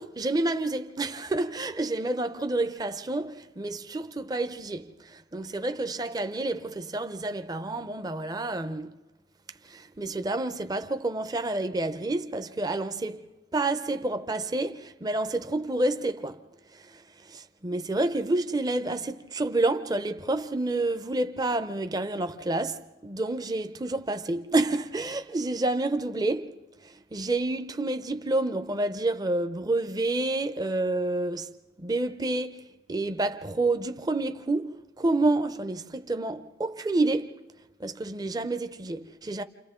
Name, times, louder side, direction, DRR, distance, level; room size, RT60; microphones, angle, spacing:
voice 1, 0.0-8.9 9.6-16.4 16.7-31.5 31.8-37.4 37.8-39.4, right 2 dB, 20° right, 0.6 m, -29 dB
29.5 x 28.0 x 3.7 m
head